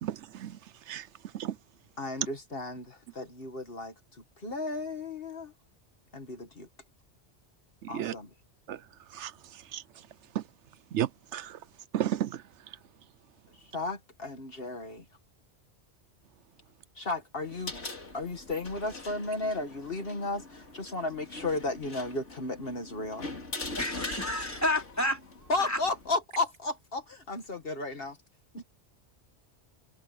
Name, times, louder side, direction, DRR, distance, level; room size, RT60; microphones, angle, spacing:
voice 1, 0.0-0.6 0.9-1.1 1.3-1.6 7.8-8.1 8.7-8.8 9.1-9.3 9.7-9.8 10.3-10.4 10.9-11.6 11.9-12.4, right 11 dB, 80° right, 0.9 m, -32 dB
voice 2, 2.0-3.9 4.4-5.5 6.1-6.7 7.9-8.3 13.7-15.0 17.0-17.7 18.1-23.3 25.5-28.2 28.5-28.6, left 2 dB, 55° left, 1.9 m, -34 dB
sound 1, 17.4-26.1, left 2 dB, 85° left, 3.4 m, -42 dB
voice 3, 23.7-25.2 25.6-25.8, left 1 dB, 15° left, 4.0 m, -30 dB
omnidirectional pair, 1.2 m